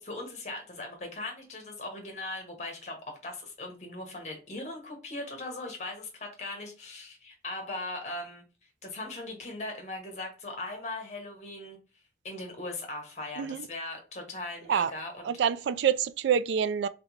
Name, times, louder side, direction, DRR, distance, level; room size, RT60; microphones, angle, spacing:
voice 1, 0.0-8.4 8.8-11.8 12.2-15.3, left 2 dB, 40° left, 1.3 m, -39 dB
voice 2, 13.4-13.7 14.7-14.9 15.2-16.9, right 8 dB, 85° right, 0.3 m, -26 dB
3.6 x 3.4 x 3.2 m
head